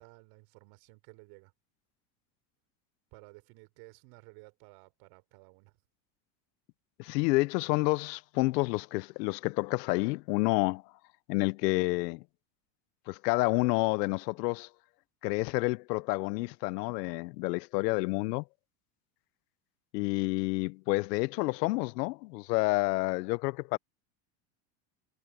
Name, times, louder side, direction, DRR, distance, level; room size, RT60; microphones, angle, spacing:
voice 1, 0.0-1.5 3.1-5.7, right 28 dB, 65° right, 3.7 m, -55 dB
voice 2, 7.0-10.8 11.3-12.2 13.1-14.7 15.2-18.4 19.9-23.8, left 24 dB, 85° left, 0.6 m, -29 dB
supercardioid pair, 140°, 48 cm